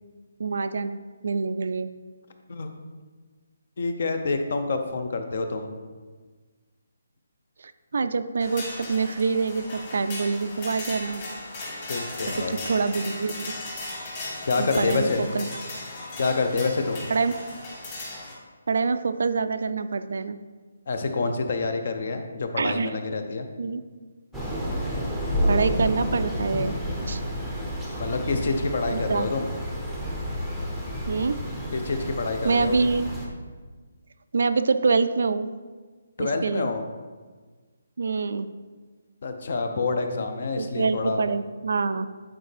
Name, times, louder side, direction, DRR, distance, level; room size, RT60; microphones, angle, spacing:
voice 1, 0.4-1.9 7.9-11.2 12.5-13.5 14.6-15.5 17.1-17.3 18.7-20.4 22.6-23.0 23.6-23.8 25.5-27.2 28.9-29.3 31.1-31.4 32.4-33.1 34.3-35.5 36.2-36.7 38.0-38.5 40.6-42.1, right 4 dB, 60° right, 11 dB, 0.3 m, -25 dB
voice 2, 3.8-5.7 11.9-12.6 14.5-15.3 16.2-17.0 20.9-23.5 28.0-29.5 31.7-32.8 36.2-36.8 39.2-41.2, left 3 dB, 45° left, 6 dB, 0.6 m, -27 dB
sound 1, 8.4-18.3, left 2 dB, 25° left, 1.7 m, -37 dB
Thunder / Rain, 24.3-33.3, equal, ahead, 0.7 m, -30 dB
8.8 x 4.4 x 3.3 m, 1.4 s
hypercardioid pair, 175°, 0 cm